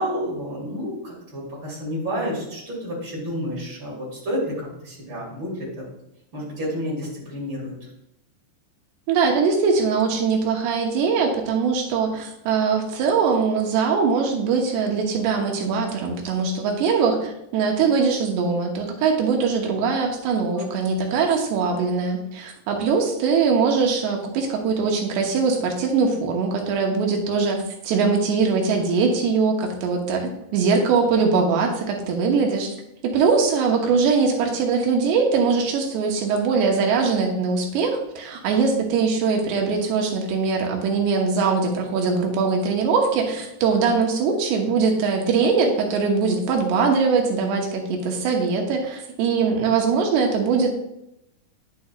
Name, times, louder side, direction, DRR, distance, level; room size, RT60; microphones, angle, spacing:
voice 1, 0.0-5.8 6.3-7.7 20.6-20.7, equal, 30° right, -4 dB, 2.8 m, -30 dB
voice 2, 9.1-32.8 33.0-50.7, right 5 dB, 80° right, 1 dB, 3.1 m, -22 dB
9.3 x 8.3 x 2.4 m, 0.83 s
omnidirectional pair, 5.1 m